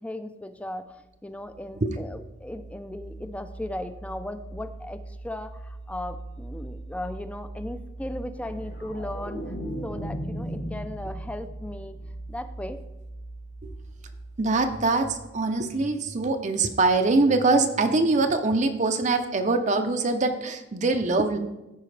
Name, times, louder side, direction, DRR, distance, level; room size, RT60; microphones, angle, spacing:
voice 1, 0.0-9.5 9.8-12.0 12.3-12.8, left 1 dB, 5° left, 9 dB, 0.4 m, -37 dB
sound 1, 1.0-15.5, right 2 dB, 60° left, 1.3 m, -41 dB
sound 2, 8.4-11.6 11.9-12.3, equal, 85° left, 3.0 m, -36 dB
voice 2, 14.4-21.4, right 3 dB, 40° right, 6 dB, 0.6 m, -23 dB
14.0 x 4.7 x 3.3 m, 0.97 s
head